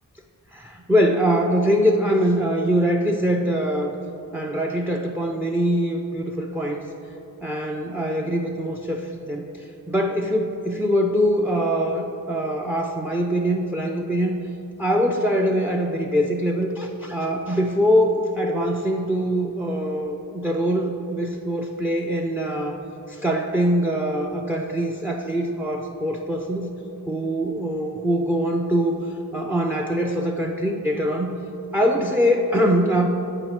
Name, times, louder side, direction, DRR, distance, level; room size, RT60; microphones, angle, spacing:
voice 1, 0.5-3.9 4.3-6.8 7.4-14.4 14.8-22.8 23.1-26.7 27.1-31.4 31.7-33.1, equal, 5° right, 3 dB, 0.4 m, -23 dB
7.6 x 5.2 x 4.8 m, 2.9 s
wide cardioid pair, 55°, 40 cm